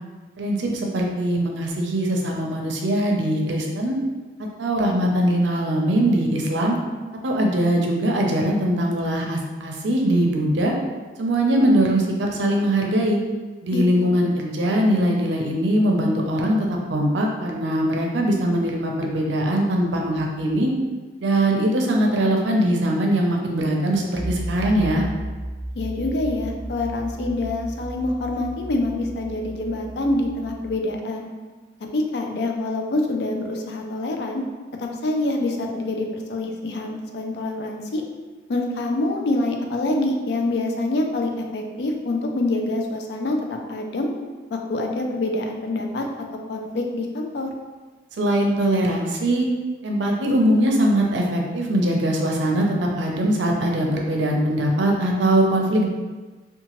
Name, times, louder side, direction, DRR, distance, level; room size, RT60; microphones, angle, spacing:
voice 1, 0.4-4.0 4.6-6.7 7.2-10.7 11.2-13.2 13.6-20.7 21.2-25.1 48.2-49.5 49.8-55.9, right 1 dB, 90° right, 0 dB, 0.5 m, -21 dB
voice 2, 13.7-14.3 25.8-31.3 31.9-34.4 34.8-38.0 38.5-44.1 44.5-46.1 46.5-47.5, left 2 dB, 65° left, 2 dB, 0.4 m, -26 dB
sound 1, 24.2-30.8, right 1 dB, ahead, 0.5 m, -34 dB
2.8 x 2.2 x 2.9 m, 1.3 s
head